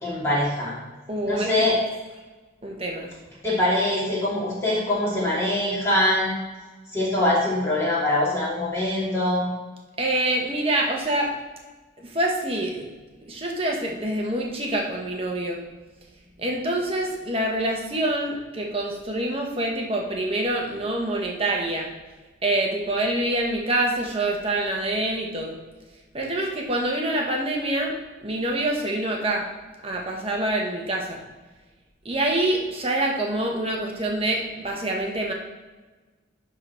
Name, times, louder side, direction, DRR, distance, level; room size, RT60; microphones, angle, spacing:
voice 1, 0.0-0.7 1.2-1.8 3.4-6.3 6.9-9.5, left 1 dB, 15° left, -9 dB, 2.7 m, -23 dB
voice 2, 1.1-1.6 2.6-3.1 10.0-11.3 12.0-12.9 13.3-15.6 16.4-21.9 22.4-25.6 26.1-28.0 28.2-29.5 29.8-31.2 32.0-35.3, right 1 dB, 30° right, 0 dB, 1.1 m, -26 dB
10.5 x 3.9 x 4.4 m, 1.2 s
head